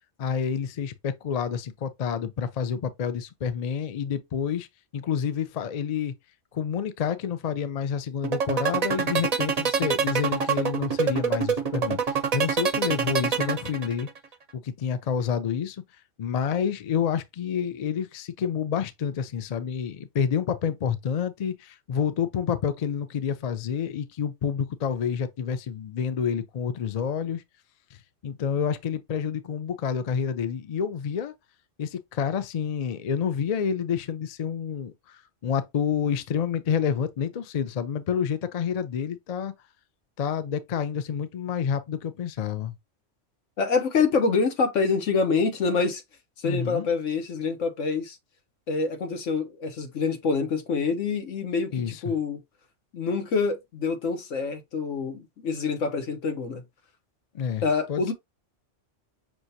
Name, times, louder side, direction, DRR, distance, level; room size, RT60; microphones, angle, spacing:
voice 1, 0.2-4.7 4.9-6.1 6.5-14.1 14.5-15.8 16.2-27.4 28.2-31.3 31.8-39.5 40.2-42.7 46.4-46.9 51.7-52.0 57.3-57.6 57.9-58.1, left 7 dB, 50° left, 0.4 m, -28 dB
sound 1, 8.2-14.2, right 6 dB, 45° right, 0.5 m, -25 dB
voice 2, 43.6-46.0 46.4-48.2 48.7-52.4 52.9-56.6 57.6-58.1, left 4 dB, 85° left, 1.3 m, -26 dB
6.2 x 2.5 x 2.7 m
omnidirectional pair, 1.3 m